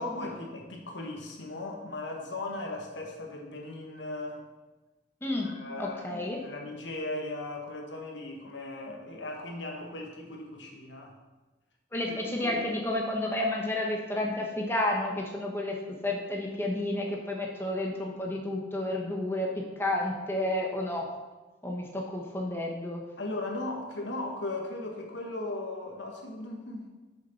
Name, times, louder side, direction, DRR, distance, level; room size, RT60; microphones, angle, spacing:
voice 1, 0.0-4.4 5.4-11.1 12.4-12.6 23.2-26.9, left 2 dB, 80° left, 1 dB, 1.6 m, -37 dB
voice 2, 5.2-5.5 5.8-6.4 11.9-21.1 21.6-23.0, left 1 dB, 15° left, -1 dB, 1.1 m, -31 dB
6.9 x 6.3 x 5.8 m, 1.2 s
head